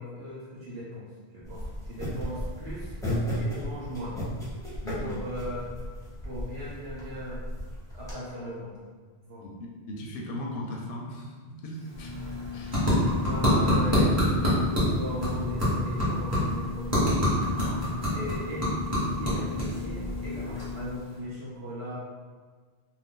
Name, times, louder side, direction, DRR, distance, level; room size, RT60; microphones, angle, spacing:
voice 1, 0.0-2.9 3.4-4.2 5.0-5.8 6.2-7.4 7.9-8.7 9.2-9.4 13.2-17.3 18.1-22.0, equal, 65° right, -7 dB, 0.9 m, -38 dB
sound 1, 1.4-8.1, equal, 5° left, 0.7 m, -35 dB
voice 2, 4.8-5.2 9.4-12.2 12.5-13.1 17.4-17.9, left 1 dB, 60° left, 0 dB, 0.7 m, -38 dB
sound 2, 11.7-21.2, left 1 dB, 15° right, 1.0 m, -27 dB
2.6 x 2.2 x 3.6 m, 1.5 s
omnidirectional pair, 1.1 m